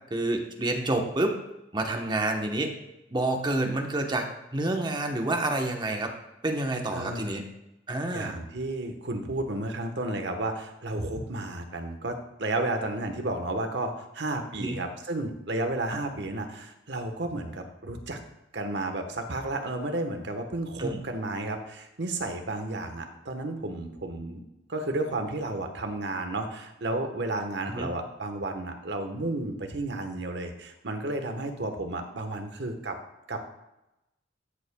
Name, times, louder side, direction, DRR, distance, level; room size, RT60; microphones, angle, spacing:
voice 1, 0.1-1.4 1.7-2.7 3.1-4.3 4.5-6.1 6.4-7.4 7.9-8.4 14.6-14.8 20.8-21.0 27.7-27.9, right 2 dB, 25° right, 3 dB, 1.0 m, -28 dB
voice 2, 6.9-7.4 8.1-18.2 18.5-24.4 24.7-33.0 33.3-33.4, right 2 dB, 65° right, 5 dB, 1.2 m, -32 dB
13.0 x 7.2 x 2.3 m, 0.92 s
head